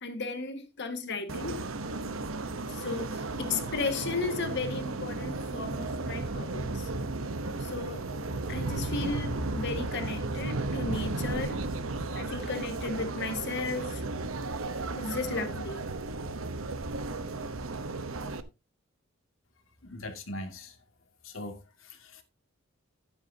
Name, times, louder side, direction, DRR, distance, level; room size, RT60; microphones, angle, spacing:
voice 1, 0.0-1.6 2.7-6.9 7.6-8.0 8.5-11.6 12.1-14.0 14.9-15.8, left 4 dB, 60° left, 1.8 m, -35 dB
sound 1, 1.3-18.4, right 2 dB, 90° right, 1.0 m, -34 dB
voice 2, 19.8-20.8 21.2-22.2, left 1 dB, 75° left, 2.4 m, -41 dB
12.5 x 9.5 x 2.8 m
head